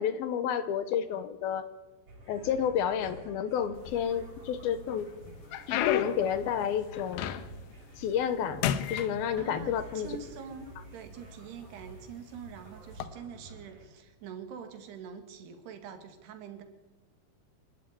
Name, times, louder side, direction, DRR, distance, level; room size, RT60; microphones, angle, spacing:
voice 1, 0.0-1.7 2.3-5.1 5.7-7.4 8.0-8.6 8.9-10.1, left 8 dB, 75° left, 12 dB, 2.7 m, -30 dB
sound 1, 2.1-13.9, right 2 dB, 50° right, 5.4 m, -50 dB
sound 2, 3.8-4.5 5.0-7.7 8.1-8.4 8.6-9.9 10.7-10.8 11.5-11.7 12.9-13.1, left 10 dB, 90° left, 3.3 m, -33 dB
voice 2, 9.4-16.6, right 7 dB, 75° right, 7 dB, 4.1 m, -45 dB
26.0 x 13.0 x 9.7 m, 1.2 s
omnidirectional pair, 4.7 m